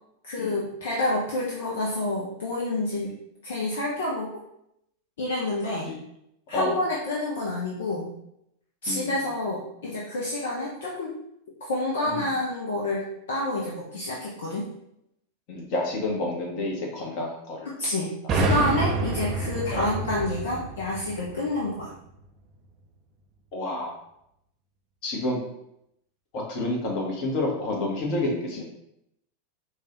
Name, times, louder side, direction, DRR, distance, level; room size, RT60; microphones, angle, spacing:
voice 1, 0.2-3.1 3.4-4.3 5.2-5.9 6.5-8.1 8.8-11.1 11.6-14.7 17.6-21.9 28.6-28.7, left 1 dB, 60° left, -4 dB, 0.7 m, -28 dB
voice 2, 15.5-17.7 18.2-18.4 19.7-19.9 23.5-23.9 25.0-25.4 26.3-28.6, left 2 dB, 40° left, -1 dB, 1.1 m, -29 dB
sound 1, 18.3-21.9, right 2 dB, 30° right, 0.4 m, -28 dB
4.6 x 2.3 x 3.0 m, 0.78 s
figure-of-eight pair, 90°, 0 cm